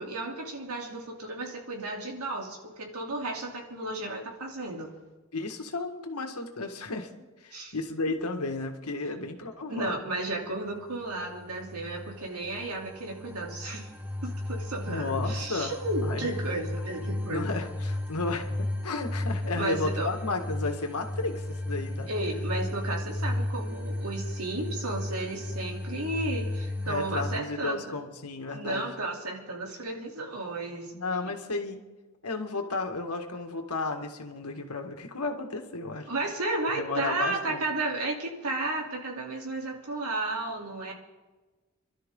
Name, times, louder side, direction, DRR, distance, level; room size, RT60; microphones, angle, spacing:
voice 1, 0.0-4.9 7.5-7.7 9.1-9.3 9.7-13.9 14.2-17.6 19.5-20.1 22.0-27.9 28.5-30.9 36.1-40.9, right 2 dB, 90° right, 0 dB, 3.2 m, -33 dB
voice 2, 5.3-7.1 7.4-9.9 14.9-15.7 16.0-16.2 17.3-22.1 26.8-28.9 30.9-31.8 32.2-36.1 36.7-37.6, left 3 dB, 90° left, 5 dB, 1.8 m, -33 dB
sound 1, 11.1-27.4, left 1 dB, 10° right, 1.0 m, -34 dB
27.0 x 12.5 x 3.8 m, 1.2 s
head